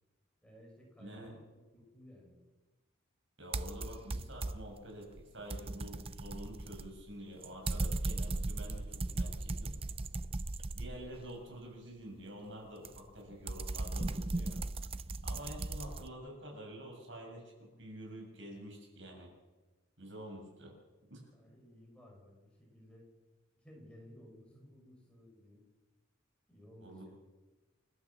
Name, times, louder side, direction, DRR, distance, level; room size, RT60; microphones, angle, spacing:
voice 1, 0.4-1.4 1.7-2.4 21.3-23.0 23.6-25.6 26.5-27.1, equal, 5° left, -2 dB, 6.4 m, -57 dB
voice 2, 1.0-1.4 3.4-9.8 10.7-14.6 15.2-19.3 20.0-20.7 21.1-21.2 26.8-27.1, equal, 65° right, 1 dB, 7.4 m, -48 dB
sound 1, 3.5-4.8 5.2-11.3 12.8-16.1, right 2 dB, 30° right, 0.6 m, -37 dB
29.5 x 13.0 x 7.5 m, 1.2 s
head